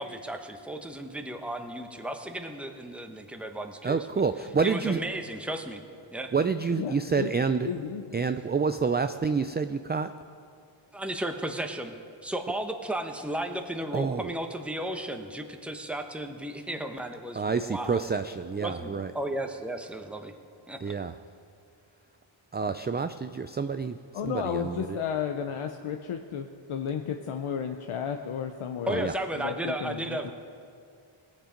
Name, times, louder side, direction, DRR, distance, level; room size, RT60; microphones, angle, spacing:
voice 1, 0.0-4.1 4.6-5.8 6.1-6.3 10.9-18.0 18.6-20.3 20.7-20.8 28.9-30.3, right 1 dB, ahead, 5 dB, 0.9 m, -34 dB
voice 2, 3.8-5.0 6.3-7.7 8.1-10.1 13.9-14.3 17.4-19.1 20.8-21.1 22.5-24.0 24.2-25.0 28.9-29.1, right 5 dB, 25° right, 9 dB, 0.3 m, -28 dB
voice 3, 6.8-7.3 7.6-8.2 24.1-30.3, left 8 dB, 85° left, 5 dB, 0.7 m, -33 dB
19.0 x 7.4 x 5.1 m, 2.3 s
wide cardioid pair, 65°, 49 cm